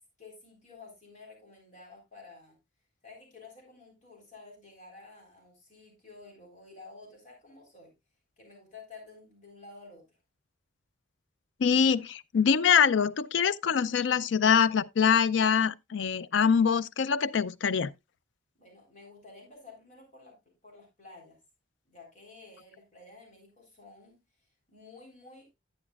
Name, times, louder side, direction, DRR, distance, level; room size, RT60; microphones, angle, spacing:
voice 1, 0.2-2.6 3.0-8.0 8.4-10.2 18.5-21.4 21.9-25.5, left 3 dB, 40° left, 3.6 m, -52 dB
voice 2, 11.6-17.9, left 6 dB, 70° left, 0.4 m, -24 dB
11.0 x 9.4 x 2.3 m
head